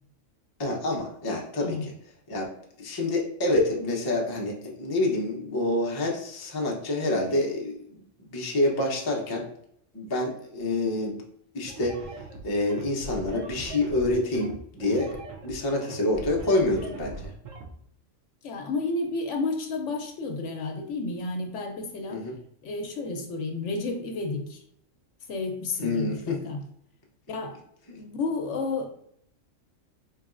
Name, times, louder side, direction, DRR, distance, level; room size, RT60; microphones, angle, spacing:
voice 1, 0.6-1.9 2.3-2.5 2.8-8.0 8.3-9.5 9.9-11.2 11.5-12.0 12.4-15.2 15.4-17.3 22.1-22.4 25.8-26.4 27.9-28.0, left 2 dB, 30° left, -2 dB, 0.5 m, -27 dB
sound 1, 11.7-17.7, right 2 dB, 80° right, 1.0 m, -40 dB
voice 2, 18.4-22.2 22.6-24.6 25.3-26.6 27.3-27.6 28.0-28.9, left 3 dB, 70° left, 3 dB, 0.9 m, -31 dB
3.9 x 3.0 x 2.4 m, 0.70 s
omnidirectional pair, 1.4 m